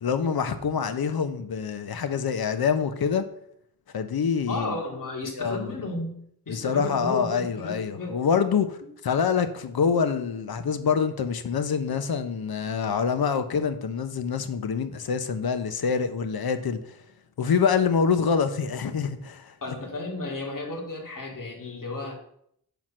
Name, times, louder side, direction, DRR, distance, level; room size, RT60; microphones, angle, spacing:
voice 1, 0.0-3.2 3.9-4.7 5.2-5.7 6.5-8.8 9.0-17.0 17.4-19.5, left 6 dB, 75° left, 1.0 m, -26 dB
voice 2, 4.5-6.2 6.5-8.2 19.6-22.1, left 2 dB, 60° left, 2.6 m, -33 dB
7.2 x 6.0 x 6.2 m
wide cardioid pair, 120°, 37 cm